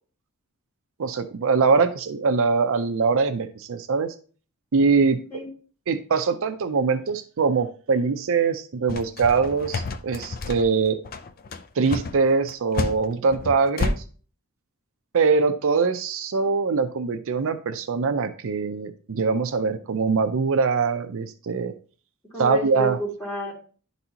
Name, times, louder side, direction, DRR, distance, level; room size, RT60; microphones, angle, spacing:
voice 1, 1.0-4.1 4.7-5.2 5.9-11.0 11.8-14.0 15.1-21.7 22.4-23.0, right 4 dB, 65° right, 9 dB, 0.5 m, -23 dB
sound 1, 8.9-13.9, left 3 dB, 40° left, 0.5 m, -29 dB
voice 2, 22.3-23.5, equal, 15° left, -4 dB, 2.7 m, -30 dB
11.0 x 4.1 x 2.8 m, 0.40 s
head